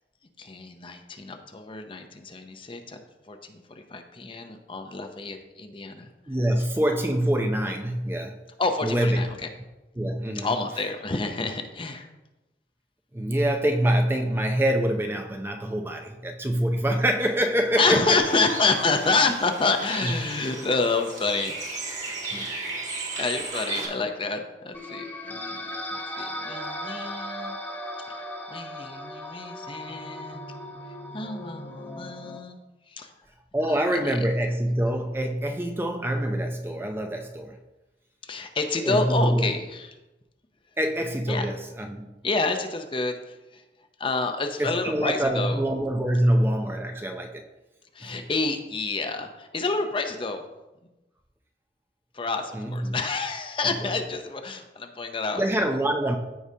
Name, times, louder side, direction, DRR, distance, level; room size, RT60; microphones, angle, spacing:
voice 1, 0.4-3.0 3.3-6.1 8.6-9.5 10.3-12.1 17.8-21.5 22.2-22.3 23.2-27.6 28.1-30.5 31.1-32.6 32.9-33.1 33.7-34.2 38.2-40.0 41.3-41.5 42.2-43.6 44.0-45.6 47.9-50.4 52.1-55.5, left 3 dB, 30° left, 6 dB, 0.6 m, -28 dB
voice 2, 6.3-8.4 8.8-9.3 10.0-10.5 13.1-18.2 20.0-20.1 22.3-22.5 33.5-37.6 38.8-39.5 40.8-42.1 44.6-47.4 48.0-48.2 52.5-53.0 53.6-53.9 55.4-56.2, right 1 dB, 15° right, 4 dB, 0.5 m, -25 dB
Bird, 18.2-23.9, right 3 dB, 45° right, 1.9 m, -35 dB
sound 1, 24.7-32.4, left 1 dB, 10° left, 1.0 m, -37 dB
14.0 x 4.8 x 2.8 m, 1.0 s
head